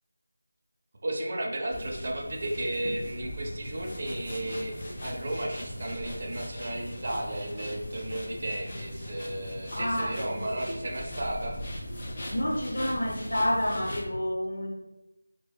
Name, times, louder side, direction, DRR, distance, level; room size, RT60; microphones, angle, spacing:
voice 1, 1.0-11.5, right 1 dB, 35° right, 0 dB, 0.4 m, -34 dB
sound 1, 1.7-14.1, left 1 dB, 25° left, 0.5 m, -39 dB
voice 2, 9.7-10.7 12.3-14.7, equal, 65° left, -1 dB, 0.7 m, -29 dB
2.1 x 2.0 x 3.2 m, 0.98 s
figure-of-eight pair, 175°, 0 cm